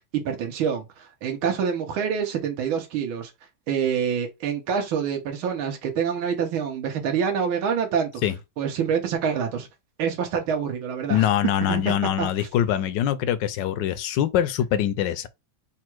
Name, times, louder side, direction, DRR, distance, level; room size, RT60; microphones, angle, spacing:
voice 1, 0.1-3.3 3.7-8.2 8.6-9.7 10.0-11.2 11.7-11.8 12.2-12.5, right 7 dB, 80° right, 1.7 m, -26 dB
voice 2, 11.1-15.3, left 10 dB, 75° left, 1.1 m, -23 dB
4.2 x 2.4 x 4.4 m
omnidirectional pair, 2.2 m